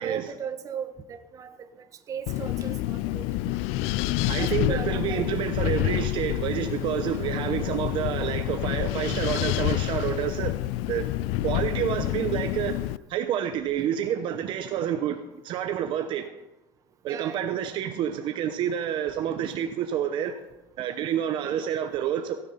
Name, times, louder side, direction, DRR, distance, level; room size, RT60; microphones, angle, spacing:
voice 1, 0.0-3.3 4.4-5.2 17.1-17.4, right 7 dB, 35° right, 8 dB, 1.2 m, -37 dB
Wind, 2.3-13.0, left 16 dB, 80° left, 0.4 m, -28 dB
voice 2, 4.3-10.6 10.9-11.1 11.4-16.3 17.0-20.4 20.8-22.4, right 9 dB, 55° right, 7 dB, 0.9 m, -29 dB
16.5 x 7.2 x 5.7 m, 0.94 s
cardioid pair, 145°, 10 cm